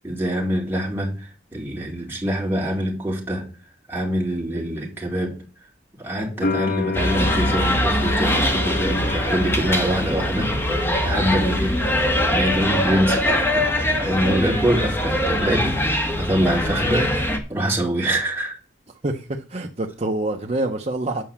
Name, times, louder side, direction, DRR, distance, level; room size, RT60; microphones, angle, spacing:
voice 1, 0.0-3.5 3.9-5.3 6.0-11.8 12.2-18.6, right 1 dB, 10° right, 3.4 m, -25 dB
sound 1, 6.4-13.2 13.5-14.4, left 5 dB, 45° left, 0.9 m, -32 dB
sound 2, 6.9-17.4, left 1 dB, 15° left, 1.4 m, -22 dB
voice 2, 19.0-21.2, right 2 dB, 35° right, 0.9 m, -26 dB
9.3 x 5.5 x 7.3 m
head